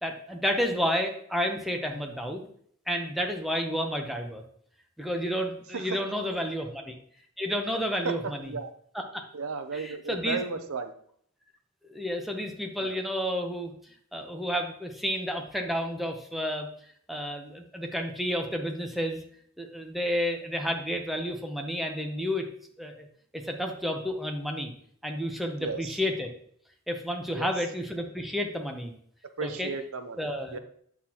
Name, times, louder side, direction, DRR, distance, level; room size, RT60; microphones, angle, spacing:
voice 1, 0.0-2.4 2.9-4.4 5.0-6.9 7.4-8.5 8.9-9.2 9.7-10.4 11.9-13.7 14.1-16.7 17.1-19.2 19.6-22.5 22.8-23.1 23.3-24.7 25.0-26.3 26.9-28.9 29.4-29.7 30.2-30.6, equal, ahead, 2 dB, 0.8 m, -31 dB
voice 2, 9.3-10.9 12.8-13.0 25.6-26.0 27.3-27.5 29.4-30.6, right 4 dB, 85° right, 8 dB, 0.7 m, -34 dB
8.3 x 5.9 x 2.9 m, 0.63 s
head